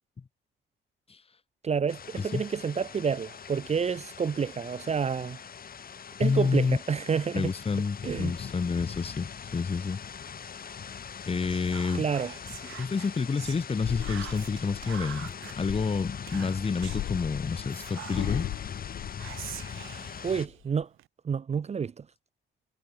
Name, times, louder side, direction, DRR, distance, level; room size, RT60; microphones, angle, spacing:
voice 1, 1.6-5.4 6.2-7.5 8.0-8.3 11.9-12.3 20.2-20.9 21.2-22.1, right 6 dB, 35° right, 0.7 m, -29 dB
sound 1, 1.9-20.5, left 7 dB, 45° left, 3.3 m, -41 dB
voice 2, 6.2-6.8 7.3-10.0 11.3-12.1 12.8-15.3 15.6-18.5, left 5 dB, 30° left, 1.3 m, -29 dB
Whispering, 11.5-13.6 14.0-15.6 16.3-17.1 17.7-18.6 19.2-21.1, right 16 dB, 85° right, 1.0 m, -44 dB
sound 2, 13.8-16.2 16.8-19.9 20.3-20.8, left 14 dB, 65° left, 0.4 m, -37 dB
cardioid pair, 90°, 20 cm